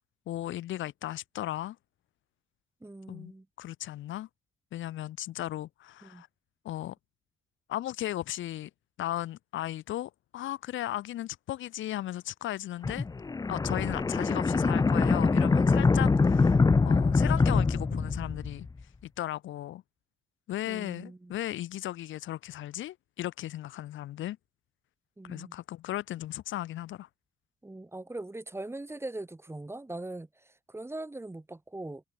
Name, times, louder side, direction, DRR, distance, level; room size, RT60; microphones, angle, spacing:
voice 1, 0.3-1.8 3.1-3.3 3.6-4.3 4.7-6.3 6.6-6.9 7.7-8.7 9.0-13.1 13.5-18.7 19.0-19.8 20.5-24.4 25.2-27.1, left 13 dB, 80° left, 1.4 m, -36 dB
voice 2, 2.8-3.5 6.0-6.2 20.7-21.3 25.2-25.6 27.6-32.0, right 2 dB, 10° right, 1.9 m, -41 dB
sound 1, 12.8-18.7, left 4 dB, 20° left, 0.6 m, -24 dB
cardioid pair, 90°, 20 cm